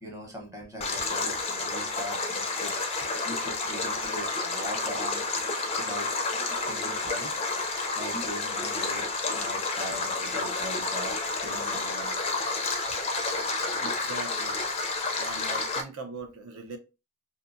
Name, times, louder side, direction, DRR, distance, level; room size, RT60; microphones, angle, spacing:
voice 1, 0.0-2.7 3.2-5.3 5.8-6.1 6.6-7.4 7.9-9.0 9.3-12.2, equal, 15° right, 0.7 m, -40 dB
Stream, 0.8-15.8, left 3 dB, 30° left, 0.4 m, -30 dB
voice 2, 13.8-14.6 15.2-16.8, right 3 dB, 75° right, 0.6 m, -40 dB
2.6 x 2.2 x 2.5 m
head